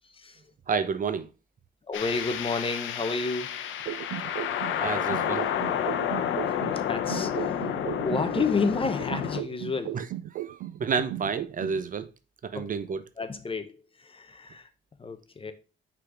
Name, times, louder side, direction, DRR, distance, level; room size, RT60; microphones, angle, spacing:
voice 1, 0.7-1.3 4.8-5.5 9.9-10.0 10.4-12.1 12.4-13.0, right 6 dB, 45° right, 0.7 m, -30 dB
sound 1, 1.9-9.4, left 9 dB, 75° left, 0.8 m, -30 dB
voice 2, 1.9-3.6 4.9-5.0 6.6-7.7 8.0-10.0 12.5-12.7 13.2-14.7 15.0-15.5, left 4 dB, 25° left, 0.9 m, -31 dB
sound 2, 3.9-6.8 7.1-10.8 11.1-11.8, right 14 dB, 85° right, 0.5 m, -36 dB
5.8 x 4.0 x 4.7 m
cardioid pair, 90°, 20 cm